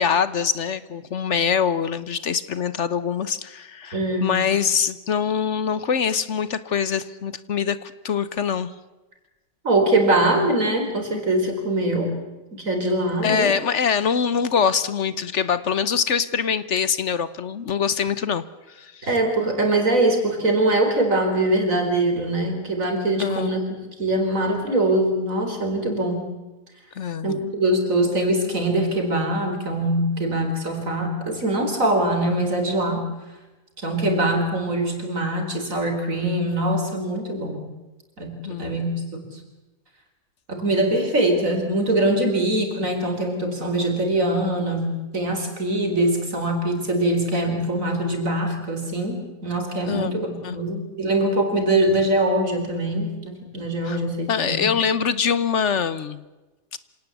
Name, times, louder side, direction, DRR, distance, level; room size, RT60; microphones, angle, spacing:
voice 1, 0.0-8.7 13.2-18.4 18.7-18.9 23.2-23.5 27.0-27.4 38.4-38.7 49.9-50.1 50.4-50.6 53.8-54.0 54.3-56.2 56.7-56.8, left 7 dB, 60° left, 15 dB, 1.2 m, -24 dB
voice 2, 3.9-4.4 9.6-12.1 12.5-13.5 19.0-23.6 24.0-26.3 27.2-33.1 33.8-37.7 38.2-38.9 39.3-39.4 40.5-54.7, right 1 dB, 70° right, 4 dB, 4.8 m, -23 dB
26.5 x 18.0 x 8.3 m, 1.1 s
omnidirectional pair, 1.4 m